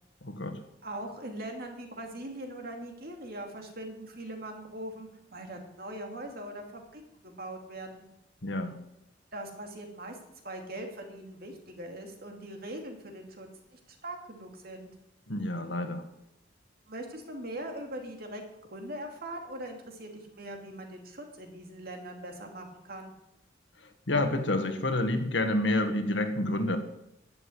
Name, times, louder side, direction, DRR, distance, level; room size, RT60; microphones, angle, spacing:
voice 1, 0.2-0.6 8.4-8.8 15.3-16.1 23.8-26.8, left 1 dB, 70° left, 6 dB, 1.9 m, -29 dB
voice 2, 0.8-8.1 9.3-10.2 10.4-14.9 16.9-18.4 18.7-23.1, right 1 dB, 55° right, 3 dB, 2.6 m, -41 dB
12.5 x 7.9 x 9.7 m, 0.84 s
head